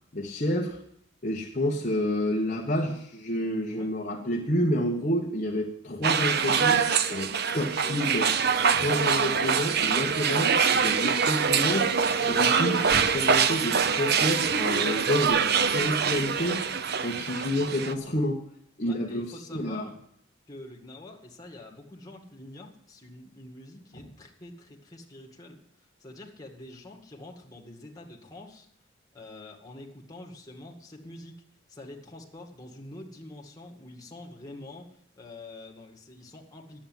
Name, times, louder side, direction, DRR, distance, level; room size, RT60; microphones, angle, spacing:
voice 1, 0.1-0.8 1.2-8.3 8.7-11.9 12.3-16.6 17.0-18.4 18.8-19.9, left 1 dB, 40° left, -1 dB, 1.2 m, -29 dB
sound 1, 6.0-17.9, right 6 dB, 50° right, 0.7 m, -24 dB
voice 2, 18.8-20.0 20.5-28.7 29.1-31.3 31.7-36.8, left 2 dB, 20° left, 1 dB, 2.1 m, -46 dB
10.5 x 8.7 x 9.3 m, 0.71 s
head